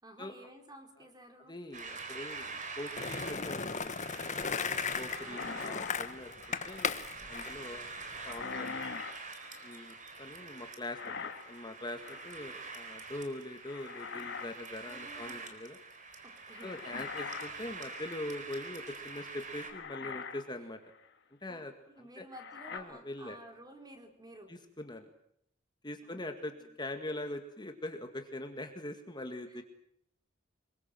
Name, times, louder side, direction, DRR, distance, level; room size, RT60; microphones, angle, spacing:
voice 1, 0.0-1.6 5.2-5.9 14.9-15.5 16.2-16.9 21.5-24.5 26.0-26.2 26.5-26.7 29.5-29.6, right 1 dB, 20° right, 5 dB, 4.5 m, -53 dB
voice 2, 1.5-4.3 5.0-7.9 8.3-8.8 9.6-15.8 16.6-20.8 21.4-21.7 22.0-22.3 22.7-23.4 24.5-25.1 25.8-26.5 26.8-29.6, left 1 dB, 20° left, 6 dB, 2.0 m, -43 dB
sound 1, 1.7-19.7, right 4 dB, 40° right, 4.1 m, -46 dB
Skateboard, 3.0-8.4, left 5 dB, 40° left, 1.3 m, -36 dB
sound 2, 5.1-7.0 8.2-9.9 10.9-11.7 12.0-12.5 13.6-14.5 14.8-15.1 16.6-18.4 19.1-19.2 19.6-20.5 20.9-21.1 22.3-22.8, left 5 dB, 60° left, 2.5 m, -43 dB
26.0 x 23.0 x 7.8 m, 0.70 s
head